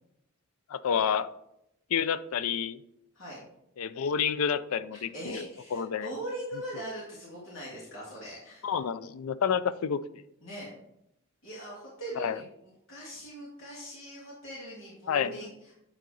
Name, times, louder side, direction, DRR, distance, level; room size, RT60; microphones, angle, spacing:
voice 1, 0.7-1.3 1.9-2.8 3.8-5.5 5.7-6.1 8.6-10.0 12.2-12.4 15.1-15.3, left 7 dB, 85° left, 15 dB, 0.4 m, -29 dB
voice 2, 4.9-8.7 10.4-10.7 11.4-15.7, right 1 dB, 65° left, -6 dB, 2.6 m, -41 dB
9.1 x 3.9 x 3.9 m, 0.81 s
head